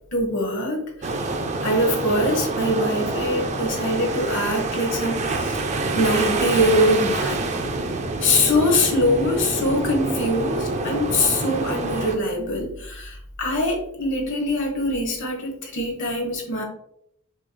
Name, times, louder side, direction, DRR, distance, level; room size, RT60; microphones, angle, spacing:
voice 1, 0.1-1.2 1.6-5.7 5.9-7.5 8.2-16.6, left 1 dB, 55° left, 1 dB, 1.2 m, -23 dB
sound 1, 1.0-12.2, right 3 dB, 30° right, 0.4 m, -26 dB
6.1 x 3.2 x 2.2 m, 0.72 s
head